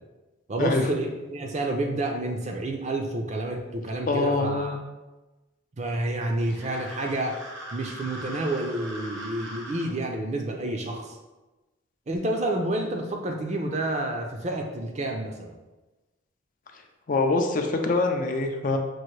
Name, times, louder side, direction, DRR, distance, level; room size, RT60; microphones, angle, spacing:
voice 1, 0.5-1.1 1.3-4.8 5.8-7.4 7.7-11.2 12.1-15.5, right 1 dB, 35° right, 2 dB, 0.4 m, -29 dB
voice 2, 4.1-4.8 17.1-18.8, left 3 dB, 40° left, 4 dB, 0.4 m, -24 dB
sound 1, 6.4-9.9, right 1 dB, 65° right, 0.9 m, -40 dB
6.0 x 2.5 x 3.1 m, 1.1 s
head